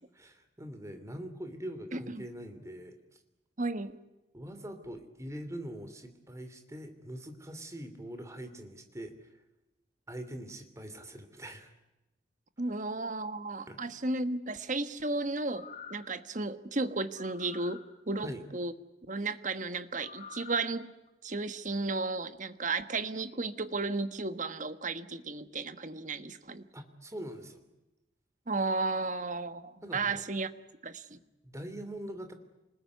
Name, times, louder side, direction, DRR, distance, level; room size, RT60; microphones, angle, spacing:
voice 1, 0.1-3.2 4.3-9.3 10.1-11.7 13.7-13.8 18.2-18.4 26.7-27.7 29.8-30.2 31.1-32.3, right 1 dB, 15° right, 8 dB, 2.9 m, -43 dB
voice 2, 3.6-4.0 12.6-18.7 19.1-20.9 21.2-26.7 28.5-30.5 30.8-31.2, right 3 dB, 40° right, 11 dB, 1.4 m, -34 dB
sound 1, 15.3-16.1 17.1-17.8 19.9-20.6 21.1-21.2, left 6 dB, 35° left, 2.5 m, -48 dB
27.5 x 20.5 x 9.5 m, 0.99 s
head